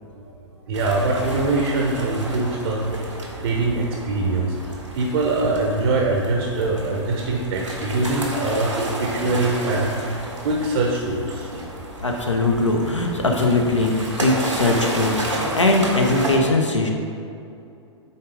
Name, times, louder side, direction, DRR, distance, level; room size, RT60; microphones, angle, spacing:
voice 1, 0.7-2.9 3.4-4.5 4.9-10.1 10.4-11.5, right 2 dB, 55° right, 0 dB, 0.9 m, -23 dB
sound 1, 0.7-16.4, right 1 dB, 85° right, 1.5 m, -31 dB
voice 2, 12.0-16.9, left 2 dB, 85° left, 1 dB, 1.0 m, -20 dB
8.5 x 3.6 x 5.1 m, 2.5 s
figure-of-eight pair, 105°, 15 cm